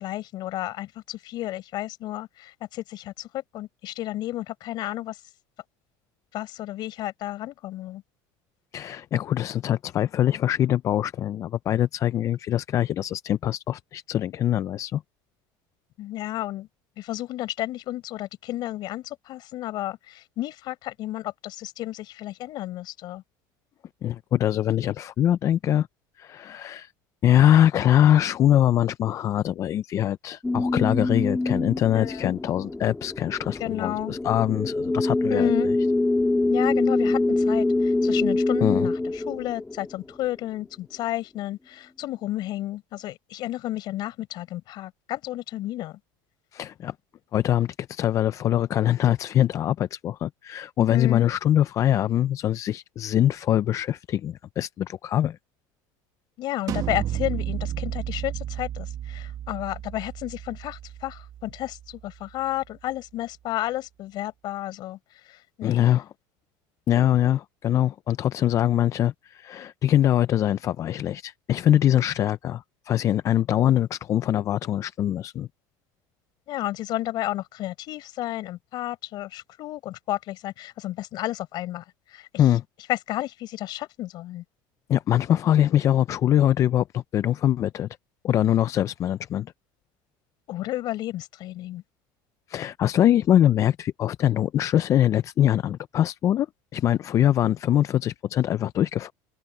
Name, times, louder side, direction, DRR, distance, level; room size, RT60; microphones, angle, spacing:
voice 1, 0.0-5.2 6.3-8.0 16.0-16.7 17.0-23.2 31.9-32.3 33.6-34.2 35.3-35.7 36.5-46.0 50.9-51.3 56.4-65.0 65.3-65.8 76.5-82.3 82.9-84.4 90.5-91.8, left 15 dB, 50° left, 5.6 m, -32 dB
voice 2, 8.7-15.0 24.0-25.9 26.2-26.9 27.2-35.5 38.6-38.9 46.5-46.9 47.3-55.4 65.6-66.1 66.9-75.5 82.4-82.6 84.9-87.9 88.2-89.5 92.5-96.5 96.7-99.1, left 11 dB, 35° left, 0.4 m, -23 dB
sound 1, 30.4-40.2, left 2 dB, 10° left, 1.6 m, -25 dB
sound 2, 56.7-62.3, right 11 dB, 40° right, 1.1 m, -33 dB
open air
cardioid pair, 145°, 9 cm